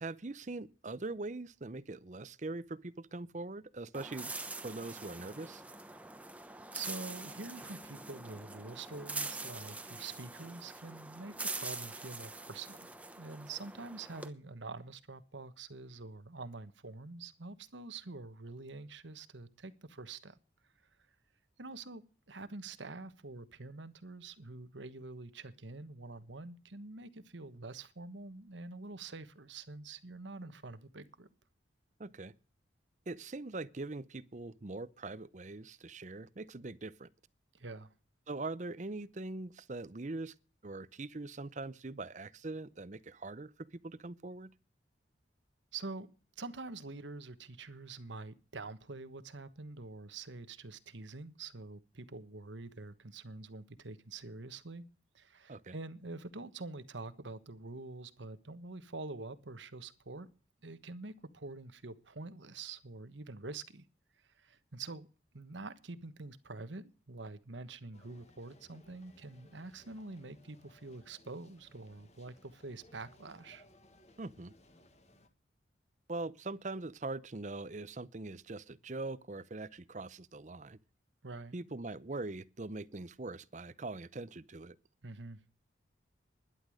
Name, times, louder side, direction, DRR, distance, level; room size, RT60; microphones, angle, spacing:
voice 1, 0.0-4.3 4.6-5.6 32.0-32.3 33.1-37.1 38.3-40.3 40.6-43.5 43.8-44.5 55.5-55.8 74.2-74.5 76.1-80.8 81.5-84.8, right 2 dB, 40° right, 0.7 m, -42 dB
sound 1, 3.9-14.3, right 3 dB, 5° right, 1.0 m, -44 dB
voice 2, 6.7-12.9 13.1-20.4 21.6-22.0 22.3-31.3 37.5-37.9 45.7-46.1 46.4-54.8 55.1-60.3 60.6-63.8 64.2-65.1 65.3-73.6 81.2-81.6 85.0-85.4, right 3 dB, 80° right, 1.3 m, -46 dB
sound 2, 67.9-75.3, left 1 dB, 35° left, 1.6 m, -63 dB
12.0 x 11.0 x 6.3 m
head